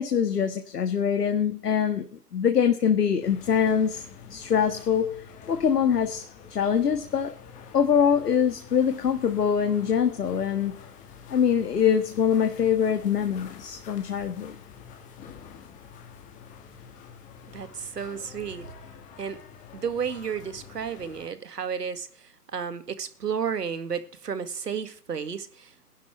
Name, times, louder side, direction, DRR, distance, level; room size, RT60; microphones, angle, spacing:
voice 1, 0.0-4.0 4.3-7.3 7.7-10.8 11.3-14.6, left 7 dB, 75° left, 1.7 m, -24 dB
sound 1, 3.2-21.3, left 7 dB, 15° left, 1.6 m, -47 dB
voice 2, 17.5-18.7 19.2-19.4 19.7-25.9, right 7 dB, 75° right, 2.1 m, -32 dB
20.5 x 11.5 x 3.3 m
hypercardioid pair, 140°, 48 cm